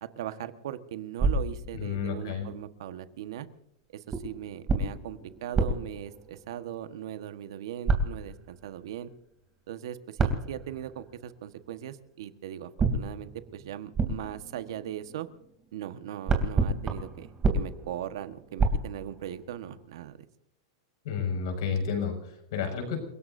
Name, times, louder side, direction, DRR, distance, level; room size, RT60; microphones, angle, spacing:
voice 1, 0.0-3.5 3.9-9.1 9.7-15.3 15.7-20.3, right 11 dB, 70° right, 10 dB, 1.4 m, -39 dB
sound 1, 1.2-2.4 4.1-7.0 7.8-8.7 10.2-11.3 12.8-15.6 15.9-19.6, right 3 dB, 20° right, 3.1 m, -30 dB
voice 2, 1.7-2.5 21.0-23.0, left 6 dB, 65° left, 4 dB, 6.4 m, -31 dB
29.5 x 17.5 x 2.7 m, 0.82 s
supercardioid pair, 135°, 2 cm